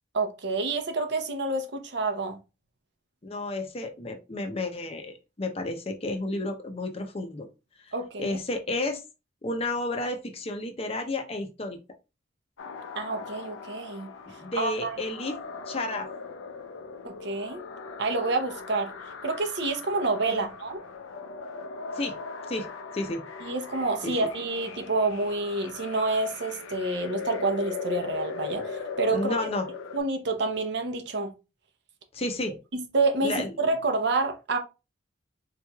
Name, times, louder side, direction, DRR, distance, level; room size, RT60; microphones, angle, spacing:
voice 1, 0.1-2.4 7.9-8.4 12.9-14.1 14.6-15.0 17.0-17.6 18.0-18.9 19.2-20.8 23.4-29.2 29.9-31.3 32.7-34.6, right 3 dB, 60° right, 0.7 m, -28 dB
voice 2, 3.2-7.5 7.8-7.9 8.2-9.0 9.4-11.8 14.4-15.4 15.7-16.1 20.3-20.5 21.9-22.2 22.5-23.3 24.0-24.1 29.1-29.7 32.1-32.6 33.2-33.5, left 2 dB, 30° left, 0.6 m, -31 dB
sound 1, 12.6-30.0, left 5 dB, 85° left, 0.5 m, -39 dB
4.1 x 3.1 x 2.3 m
head